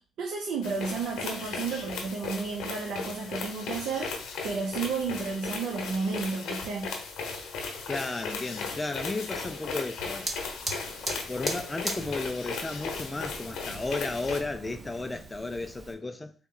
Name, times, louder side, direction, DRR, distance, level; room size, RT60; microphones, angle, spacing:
voice 1, 0.2-6.9, right 4 dB, 80° right, 0.6 m, -32 dB
sound 1, 0.6-14.4, left 4 dB, 80° left, 0.8 m, -36 dB
voice 2, 7.9-10.3 11.3-16.3, left 3 dB, 20° left, 0.3 m, -34 dB
Fire, 10.2-15.9, right 2 dB, 35° right, 0.8 m, -40 dB
3.9 x 2.2 x 3.7 m
cardioid pair, 90°, 0 cm